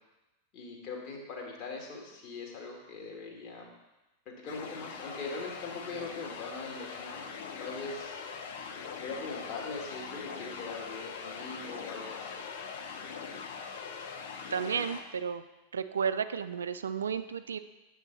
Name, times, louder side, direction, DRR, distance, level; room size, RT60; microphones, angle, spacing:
voice 1, 0.5-3.7 4.3-7.3 7.6-8.2 9.0-12.4, left 3 dB, 40° left, -1 dB, 1.9 m, -41 dB
sound 1, 4.5-15.0, left 5 dB, 55° left, 0.8 m, -42 dB
voice 2, 14.5-15.4 15.7-17.6, right 7 dB, 70° right, 11 dB, 0.3 m, -32 dB
8.2 x 6.3 x 4.0 m, 1.1 s
figure-of-eight pair, 90°, 0 cm